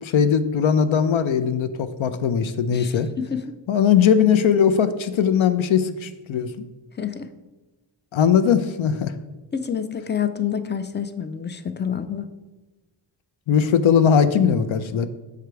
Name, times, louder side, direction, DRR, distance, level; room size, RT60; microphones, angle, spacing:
voice 1, 0.0-3.1 3.7-6.7 8.1-9.1 13.5-15.1, left 7 dB, 80° left, 12 dB, 0.6 m, -19 dB
voice 2, 2.7-3.6 7.0-7.3 9.5-12.3, left 8 dB, 25° left, 11 dB, 0.3 m, -28 dB
6.8 x 5.0 x 4.6 m, 1.1 s
wide cardioid pair, 135°, 47 cm